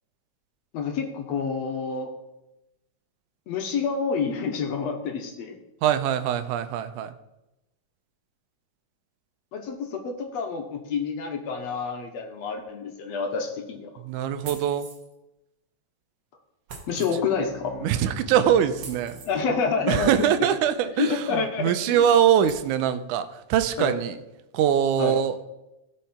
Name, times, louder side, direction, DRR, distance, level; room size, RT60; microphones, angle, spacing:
voice 1, 0.7-2.1 3.5-5.6 9.5-13.9 16.9-17.8 19.3-20.3 21.0-22.0 23.8-24.0 25.0-25.2, left 5 dB, 65° left, 4 dB, 2.0 m, -28 dB
voice 2, 5.8-7.1 14.0-14.9 17.8-19.2 19.9-24.1 24.5-25.4, right 9 dB, 85° right, 11 dB, 2.1 m, -23 dB
sound 1, 14.4-15.1 16.7-17.2 18.8-19.4 21.3-21.4 21.8-21.9 22.5-22.7, right 5 dB, 55° right, 2.2 m, -42 dB
Bowed string instrument, 16.8-20.4, left 4 dB, 10° left, 3.1 m, -45 dB
16.5 x 5.6 x 4.3 m, 0.93 s
omnidirectional pair, 3.5 m